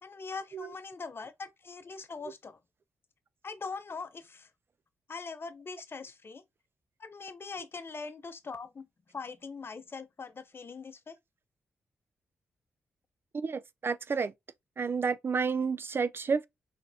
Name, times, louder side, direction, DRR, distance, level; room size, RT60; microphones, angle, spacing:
voice 1, 0.0-2.6 3.4-4.5 5.1-6.4 7.0-11.2, left 4 dB, 45° left, 0.7 m, -42 dB
voice 2, 13.3-14.3 14.8-16.5, right 5 dB, 45° right, 0.4 m, -30 dB
3.9 x 3.3 x 2.6 m
hypercardioid pair, 40°, 6 cm